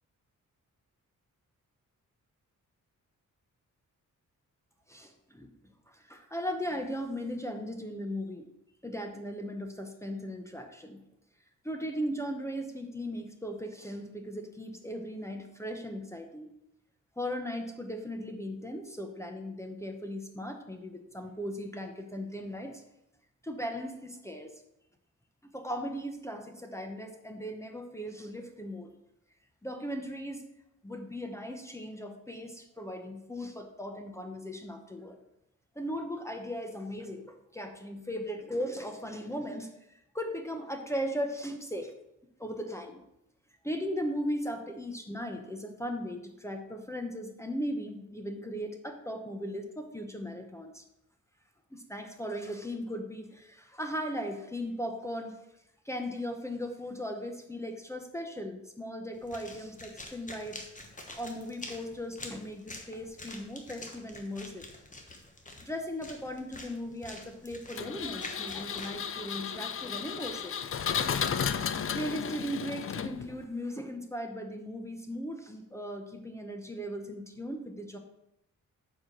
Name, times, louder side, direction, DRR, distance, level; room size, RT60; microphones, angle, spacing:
voice 1, 4.9-5.5 5.9-8.5 8.8-11.0 11.6-16.5 17.2-22.8 23.4-24.6 25.4-28.9 29.6-30.4 30.8-35.2 35.8-41.9 42.4-43.0 43.6-50.8 51.7-55.4 55.8-60.6 61.2-64.7 65.6-70.5 71.9-78.0, equal, 10° left, 4 dB, 0.8 m, -37 dB
sound 1, 59.1-68.9, left 2 dB, 25° left, 1.3 m, -47 dB
Engine, 67.8-73.4, left 7 dB, 45° left, 0.5 m, -33 dB
7.3 x 4.9 x 5.9 m, 0.83 s
wide cardioid pair, 130°, 31 cm